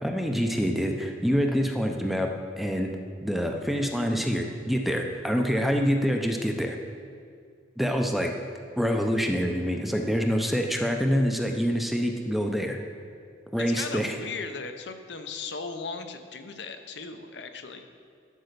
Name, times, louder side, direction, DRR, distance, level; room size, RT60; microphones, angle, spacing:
voice 1, 0.0-2.3 2.6-2.9 3.2-6.8 7.8-8.3 8.8-12.8 13.5-14.1, equal, ahead, 3 dB, 0.7 m, -26 dB
voice 2, 13.6-17.8, left 4 dB, 65° left, 7 dB, 0.8 m, -37 dB
12.0 x 5.5 x 6.8 m, 2.3 s
head